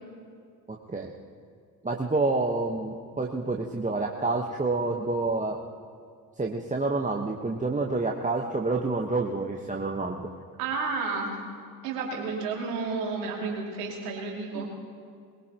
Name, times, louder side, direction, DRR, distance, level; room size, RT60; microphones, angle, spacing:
voice 1, 0.7-1.1 1.8-5.6 6.4-10.3 14.5-14.7, right 3 dB, 15° right, 0 dB, 1.3 m, -28 dB
voice 2, 10.6-11.4 11.8-14.7, right 4 dB, 80° right, -1 dB, 2.8 m, -31 dB
22.0 x 22.0 x 3.0 m, 2.2 s
hypercardioid pair, 45°, 45 cm